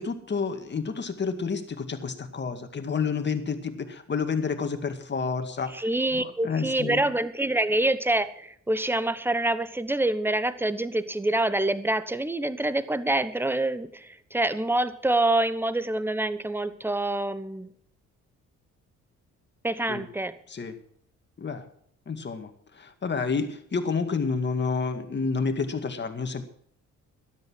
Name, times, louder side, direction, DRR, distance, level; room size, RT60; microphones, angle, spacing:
voice 1, 0.0-5.7 6.1-7.1 19.9-20.0 20.5-20.8 21.4-21.7 22.1-26.4, left 5 dB, 35° left, 7 dB, 2.1 m, -29 dB
voice 2, 5.7-17.7 19.6-20.3, right 2 dB, 5° right, 14 dB, 1.0 m, -26 dB
13.0 x 11.0 x 6.3 m, 0.65 s
cardioid pair, 90°, 30 cm